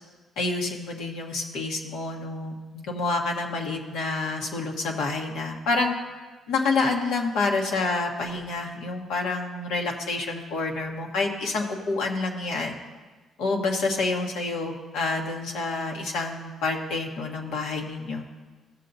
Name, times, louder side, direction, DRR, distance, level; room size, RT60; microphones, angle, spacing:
voice 1, 0.4-5.9 6.5-12.7 13.4-18.2, left 3 dB, 90° left, 1 dB, 1.2 m, -28 dB
15.5 x 6.7 x 2.7 m, 1.3 s
cardioid pair, 90°, 0 cm